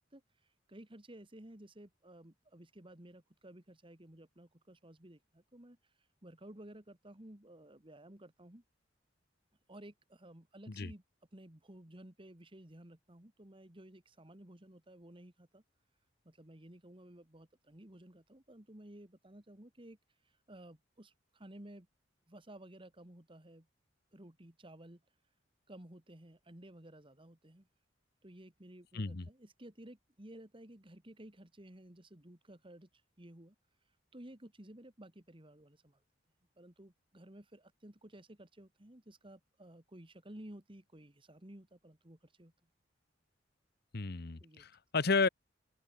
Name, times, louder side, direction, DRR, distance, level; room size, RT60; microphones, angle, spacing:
voice 1, 0.0-8.6 9.7-11.0 11.3-15.6 16.2-21.9 22.3-23.7 24.1-25.3 25.7-27.7 28.2-36.0 36.6-42.5 44.4-44.6, right 1 dB, 25° right, 2.2 m, -55 dB
voice 2, 28.9-29.3 43.9-45.3, left 4 dB, 55° left, 1.0 m, -32 dB
open air
head